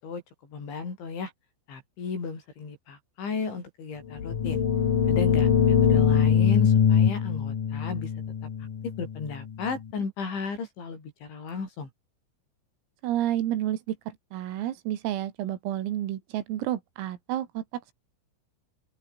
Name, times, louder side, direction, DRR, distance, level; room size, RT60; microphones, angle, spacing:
voice 1, 0.5-1.3 1.7-4.6 5.1-8.1 8.8-11.9, left 5 dB, 65° left, 9.6 m, -34 dB
sound 1, 4.1-9.7, left 7 dB, 45° left, 3.9 m, -23 dB
voice 2, 13.0-17.9, right 12 dB, 85° right, 4.8 m, -30 dB
open air
omnidirectional pair, 5.9 m